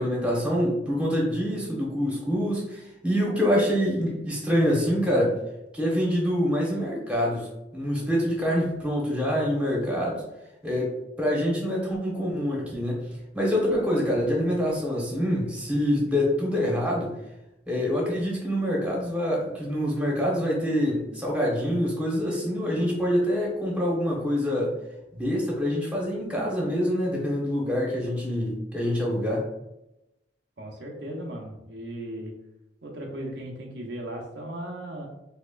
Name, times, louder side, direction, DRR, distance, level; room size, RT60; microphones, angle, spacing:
voice 1, 0.0-5.4 5.7-10.2 10.6-13.1 13.3-17.1 17.7-24.7 25.1-29.4, equal, 5° right, -3 dB, 1.1 m, -26 dB
voice 2, 30.6-32.4 32.8-35.1, right 1 dB, 70° right, -1 dB, 0.8 m, -37 dB
4.2 x 2.9 x 2.4 m, 0.91 s
head